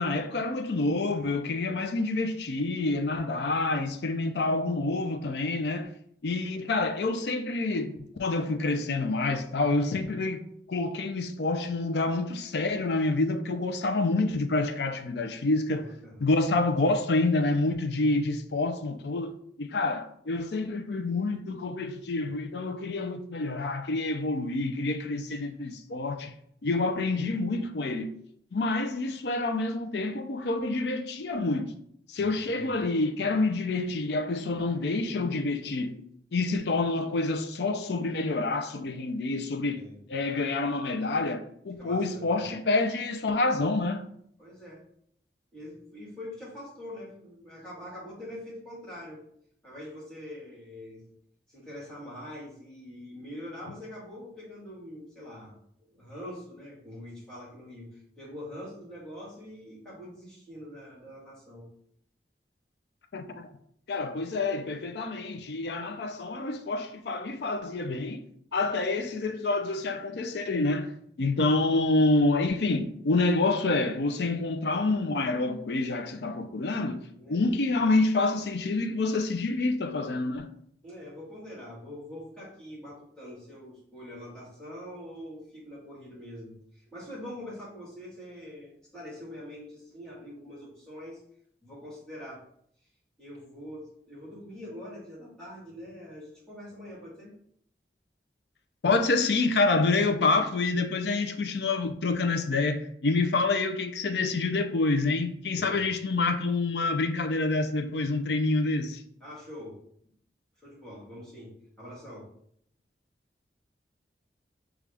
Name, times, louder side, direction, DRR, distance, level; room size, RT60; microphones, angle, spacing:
voice 1, 0.0-5.9 6.2-15.9 16.2-19.3 19.6-26.3 26.6-28.1 28.5-31.8 32.1-36.0 36.3-44.0 63.1-63.5 63.9-68.3 68.5-70.9 71.2-80.5 98.8-109.0, left 3 dB, 75° left, 0.5 m, -27 dB
voice 2, 15.8-16.2 32.2-32.8 39.7-40.0 41.8-42.5 44.4-44.8 45.5-49.2 49.6-51.0 51.5-61.7 77.2-77.4 80.8-91.2 91.6-92.4 93.2-97.3 105.5-105.8 109.2-109.8 110.6-112.3, left 1 dB, 5° left, 1.7 m, -44 dB
6.4 x 2.4 x 3.4 m
head